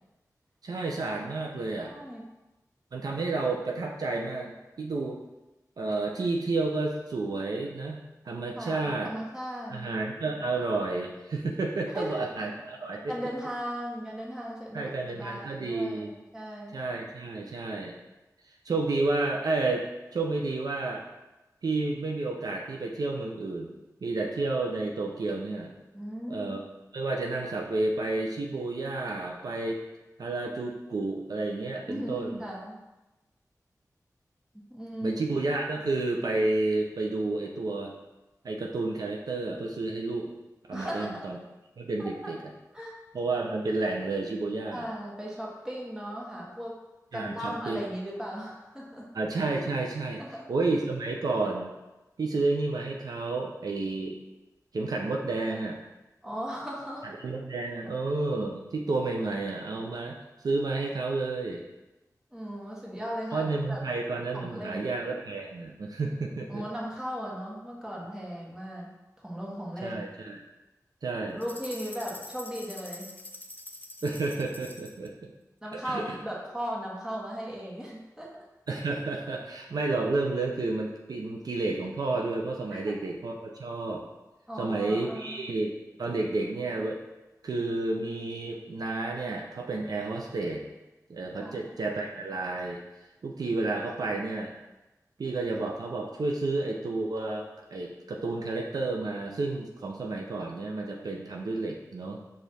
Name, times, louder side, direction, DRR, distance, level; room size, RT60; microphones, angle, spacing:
voice 1, 0.6-1.9 2.9-5.2 5.8-9.1 9.7-13.1 14.7-16.1 16.7-17.9 18.6-21.0 21.6-23.7 24.0-25.7 26.3-26.6 26.9-29.8 30.2-32.4 35.0-37.9 38.4-40.3 40.7-41.4 41.8-42.5 43.1-44.9 47.1-47.8 49.1-51.7 52.2-54.2 54.7-55.8 57.0-60.2 60.4-61.6 63.3-66.6 69.8-70.4 71.0-71.4 74.0-75.1 75.7-76.0 78.7-84.0 84.6-85.7 86.0-87.0 87.4-90.6 91.1-92.8 93.2-94.5 95.2-102.2, right 3 dB, 70° right, 0 dB, 0.5 m, -31 dB
voice 2, 1.9-2.2 8.6-10.0 11.9-12.2 13.1-16.7 25.9-26.5 31.9-32.8 34.5-35.2 40.7-41.2 42.0-42.1 42.7-43.0 44.7-46.7 47.1-49.1 50.2-50.4 56.2-57.1 62.3-63.8 64.3-64.9 66.5-68.9 69.2-70.0 71.3-73.1 75.6-78.3 82.7-82.9 84.5-85.4 91.4-91.7, equal, 10° right, -5 dB, 1.2 m, -37 dB
sound 1, 71.4-75.1, left 2 dB, 30° left, 0.4 m, -45 dB
5.0 x 2.4 x 4.1 m, 1.0 s
wide cardioid pair, 60°, 7 cm